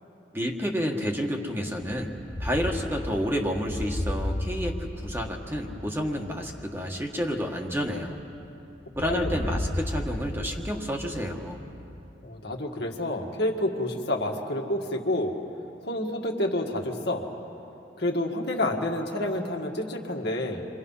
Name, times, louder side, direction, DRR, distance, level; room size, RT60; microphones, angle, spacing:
voice 1, 0.3-2.1 2.4-8.2 8.9-11.6, equal, 15° right, 1 dB, 1.6 m, -30 dB
sound 1, 1.8-8.5 8.9-12.1, left 1 dB, 20° left, 0.7 m, -34 dB
voice 2, 9.0-9.6 12.2-15.3 15.8-17.3 18.0-20.7, left 1 dB, 60° left, 1 dB, 1.9 m, -29 dB
28.5 x 24.0 x 5.6 m, 2.9 s
head